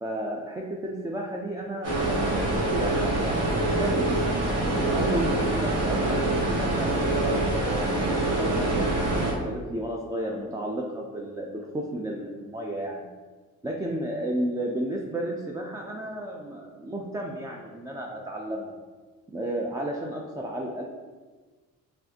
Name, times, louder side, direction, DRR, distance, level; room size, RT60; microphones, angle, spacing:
voice 1, 0.0-4.3 4.7-7.9 8.4-13.1 13.6-18.8 19.3-20.8, right 1 dB, 10° right, -1 dB, 0.4 m, -33 dB
sound 1, 1.8-9.3, right 2 dB, 45° right, 1.0 m, -25 dB
5.3 x 2.5 x 2.8 m, 1.4 s
cardioid pair, 85°, 35 cm